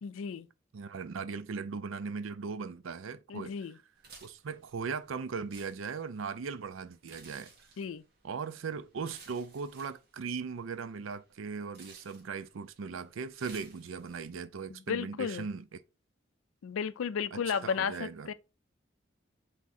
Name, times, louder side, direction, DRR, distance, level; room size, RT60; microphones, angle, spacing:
voice 1, 0.0-0.5 3.3-3.8 7.8-8.0 14.9-15.5 16.6-18.3, left 6 dB, 85° left, 0.4 m, -33 dB
voice 2, 0.7-3.5 4.2-7.5 8.2-15.8 17.3-18.3, right 5 dB, 85° right, 0.5 m, -38 dB
sound 1, 4.0-14.3, right 4 dB, 50° right, 1.4 m, -57 dB
3.6 x 3.5 x 4.1 m
head